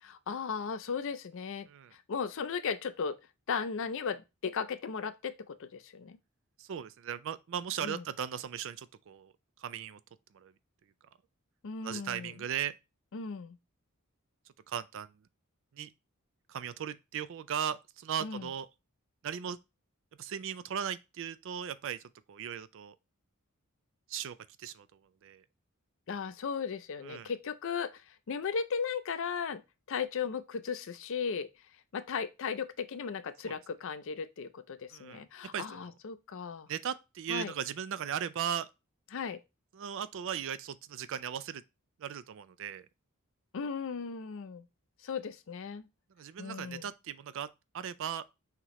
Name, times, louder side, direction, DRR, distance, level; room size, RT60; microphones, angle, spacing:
voice 1, 0.0-3.2 3.5-6.2 7.8-8.0 11.6-12.3 13.1-13.6 18.2-18.5 26.1-29.6 29.9-31.5 31.9-36.7 37.3-37.5 39.1-39.4 43.5-44.6 45.0-45.9 46.4-46.9, left 6 dB, 60° left, 0.5 m, -36 dB
voice 2, 6.6-9.3 9.6-10.0 10.3-10.5 11.8-12.7 14.7-15.1 15.7-15.9 16.5-18.7 19.2-19.6 20.2-22.0 22.3-22.9 24.1-24.9 25.2-25.4 27.0-27.3 33.4-33.6 34.9-35.2 35.5-35.9 36.7-38.7 39.7-41.6 42.0-42.9 46.2-47.5 47.7-48.2, right 8 dB, 60° right, 0.4 m, -37 dB
5.8 x 2.9 x 3.0 m
head